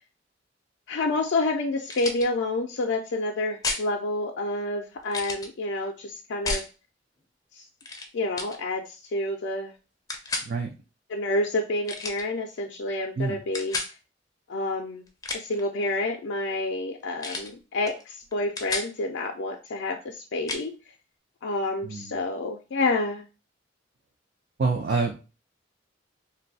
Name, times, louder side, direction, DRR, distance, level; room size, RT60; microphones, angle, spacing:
voice 1, 0.9-6.6 7.6-7.7 8.1-9.7 11.1-13.8 14.5-15.0 15.3-20.7 21.4-23.2, left 2 dB, 80° left, 2 dB, 0.4 m, -28 dB
sound 1, 1.9-2.3 3.6-3.9 5.1-5.5 6.5-6.7 7.8-8.1 8.4-8.6 10.1-10.5 11.9-12.2 13.5-13.9 15.1-15.6 17.2-17.5 17.9-18.0 18.3-18.9 20.5-20.6, left 3 dB, 20° left, 0.5 m, -32 dB
voice 2, 21.8-22.1 24.6-25.1, right 4 dB, 55° right, 1 dB, 0.4 m, -26 dB
2.6 x 2.2 x 3.9 m, 0.32 s
head